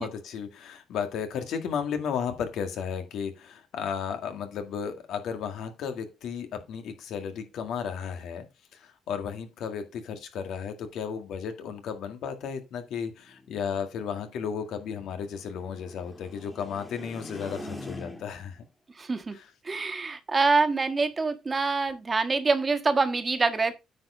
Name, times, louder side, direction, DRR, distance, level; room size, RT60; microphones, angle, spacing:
voice 1, 0.0-8.5 8.7-18.6 19.3-19.5, left 7 dB, 80° left, 2.0 m, -34 dB
sound 1, 13.1-18.5, left 2 dB, 10° left, 1.8 m, -44 dB
voice 2, 19.0-19.3 19.6-23.7, right 4 dB, 30° right, 1.4 m, -25 dB
9.4 x 4.7 x 5.0 m
cardioid pair, 90°, 0 cm